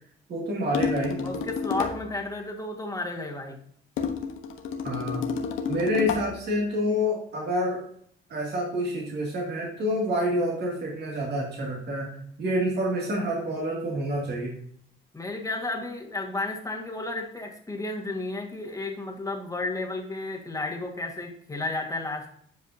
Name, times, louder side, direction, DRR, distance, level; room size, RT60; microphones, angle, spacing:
voice 1, 0.3-1.2 4.8-5.2 5.7-7.8 8.3-14.5, equal, 55° right, -3 dB, 2.3 m, -28 dB
sound 1, 0.7-2.1 4.0-6.4, left 6 dB, 85° left, 1.0 m, -30 dB
voice 2, 1.2-3.6 15.1-22.3, left 2 dB, 15° left, 1 dB, 1.6 m, -32 dB
9.5 x 5.0 x 2.7 m, 0.63 s
cardioid pair, 90°, 20 cm